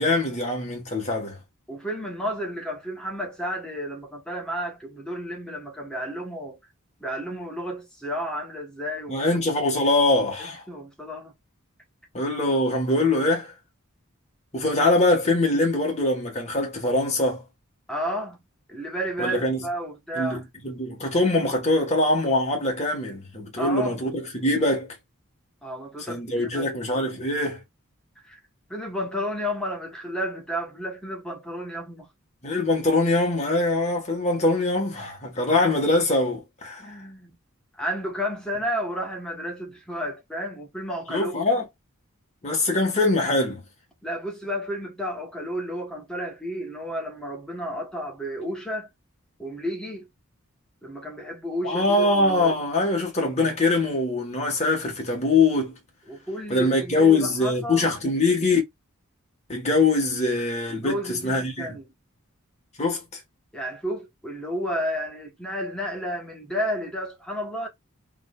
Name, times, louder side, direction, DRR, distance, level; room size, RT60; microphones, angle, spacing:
voice 1, 0.0-1.4 9.1-10.6 12.1-13.5 14.5-17.4 19.2-19.6 20.1-24.9 26.1-27.6 32.4-36.9 41.1-41.6 42.4-43.6 51.6-55.8 56.5-58.6 59.5-61.8 62.8-63.2, left 2 dB, 30° left, 1.6 m, -23 dB
voice 2, 1.7-6.6 7.0-9.7 10.4-11.3 17.9-18.4 18.7-20.4 23.6-24.0 25.6-26.7 28.2-28.4 28.7-32.1 36.8-37.3 37.8-41.5 44.0-48.9 49.4-50.1 50.8-52.6 56.1-57.9 60.7-61.9 63.5-67.7, equal, 5° left, 1.3 m, -32 dB
3.7 x 3.3 x 2.4 m
head